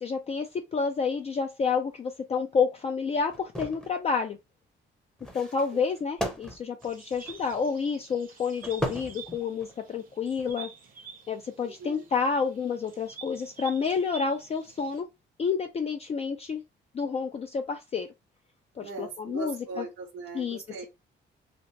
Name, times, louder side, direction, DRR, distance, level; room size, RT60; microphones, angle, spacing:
voice 1, 0.0-4.4 5.3-10.7 11.3-15.1 15.4-16.6 16.9-18.1 18.8-19.8 20.3-20.6, left 5 dB, 30° left, 0.4 m, -29 dB
sound 1, 3.3-3.9 5.2-7.7 8.6-9.8 10.3-10.5, equal, 5° left, 0.7 m, -36 dB
sound 2, 6.8-15.0, right 6 dB, 45° right, 0.7 m, -49 dB
voice 2, 11.6-12.0 18.8-20.9, right 4 dB, 75° right, 0.8 m, -40 dB
2.8 x 2.0 x 3.1 m
cardioid pair, 90°, 20 cm